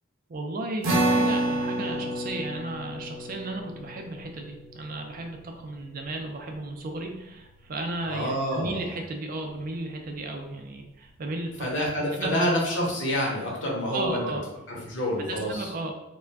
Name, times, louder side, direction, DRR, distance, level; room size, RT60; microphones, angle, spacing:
voice 1, 0.3-11.5 12.2-12.3 13.9-14.4 15.3-15.9, right 2 dB, 45° right, 3 dB, 0.4 m, -34 dB
sound 1, 0.8-7.5, right 1 dB, 80° right, 0.7 m, -30 dB
voice 2, 8.1-8.9 11.6-14.4 14.7-15.7, equal, 65° left, -2 dB, 0.8 m, -28 dB
2.4 x 2.1 x 3.3 m, 0.94 s
head